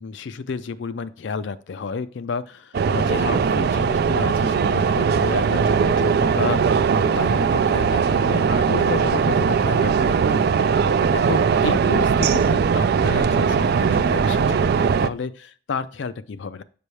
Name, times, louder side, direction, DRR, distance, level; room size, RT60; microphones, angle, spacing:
voice 1, 0.0-10.9 11.1-16.6, left 5 dB, 65° left, 12 dB, 0.4 m, -31 dB
sound 1, 2.7-15.1, right 6 dB, 55° right, 0.3 m, -19 dB
Whoosh swoosh swish, 5.0-10.5, left 2 dB, 90° left, 1.0 m, -46 dB
6.8 x 5.4 x 3.2 m, 0.42 s
head